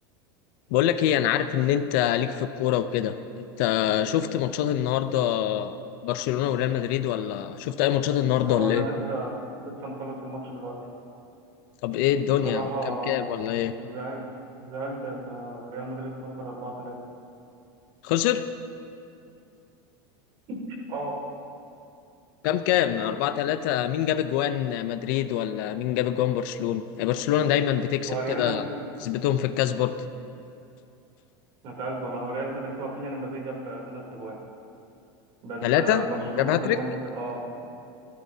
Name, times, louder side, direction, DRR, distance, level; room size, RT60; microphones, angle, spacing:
voice 1, 0.7-3.2 3.6-5.8 6.0-8.9 11.8-13.7 18.0-18.4 22.4-28.6 29.0-29.9 35.6-36.0 36.4-36.8, left 11 dB, 55° left, 10 dB, 0.6 m, -25 dB
voice 2, 8.4-10.8 12.3-13.2 13.8-14.2 14.6-17.0 20.5-20.6 20.9-21.1 28.1-28.7 31.6-34.4 35.4-37.4, right 2 dB, 40° right, -2 dB, 3.2 m, -33 dB
28.0 x 13.0 x 2.8 m, 2.6 s
supercardioid pair, 160°, 13 cm